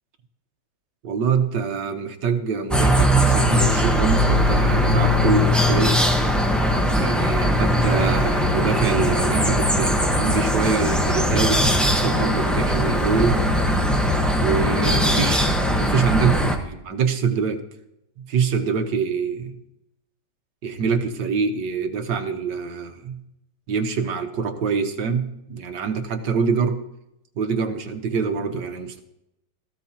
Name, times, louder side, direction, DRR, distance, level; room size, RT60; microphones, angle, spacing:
voice 1, 1.0-6.1 7.0-13.4 14.4-17.6 18.2-19.6 20.6-23.2 23.7-26.8 27.4-29.0, right 5 dB, 80° right, 6 dB, 1.7 m, -25 dB
sound 1, 2.7-16.6, equal, ahead, 0.9 m, -20 dB
17.0 x 14.5 x 2.9 m, 0.84 s
omnidirectional pair, 1.9 m